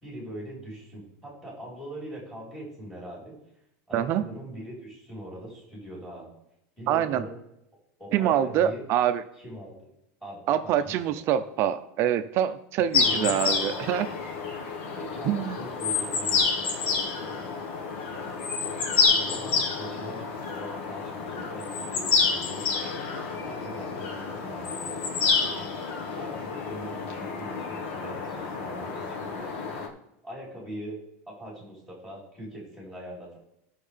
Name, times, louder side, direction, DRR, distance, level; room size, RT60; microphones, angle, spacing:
voice 1, 0.0-3.3 3.9-6.3 6.8-7.4 8.0-8.8 9.4-9.9 10.2-10.9 13.0-14.0 14.9-17.4 19.1-20.2 20.5-22.7 23.4-25.7 26.1-29.6 30.2-31.0 31.3-33.4, right 1 dB, 5° left, -5 dB, 3.9 m, -42 dB
voice 2, 3.9-4.2 6.9-7.3 8.1-9.2 10.5-14.1 15.3-15.6, right 10 dB, 35° right, 11 dB, 0.6 m, -25 dB
sound 1, 12.9-29.9, left 5 dB, 60° left, 1.3 m, -29 dB
15.0 x 6.4 x 3.4 m, 0.82 s
supercardioid pair, 165°, 7 cm